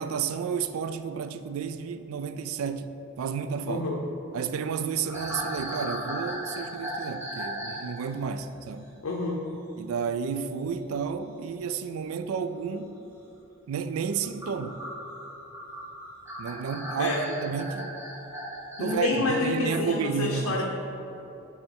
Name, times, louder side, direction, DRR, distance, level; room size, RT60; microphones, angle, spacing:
voice 1, 0.0-2.9 3.2-3.8 4.3-8.9 9.8-13.0 13.7-14.8 16.4-17.1 17.4-17.9 18.8-20.6, right 6 dB, 85° right, 0.3 m, -31 dB
voice 2, 3.7-4.0 9.0-9.4 17.0-17.3 18.8-20.7, left 2 dB, 85° left, 0.6 m, -28 dB
sound 1, 5.0-7.9 8.2-8.5 10.7-10.9 12.2-12.3 14.2-19.0, equal, 10° right, 1.0 m, -36 dB
6.8 x 3.4 x 4.4 m
head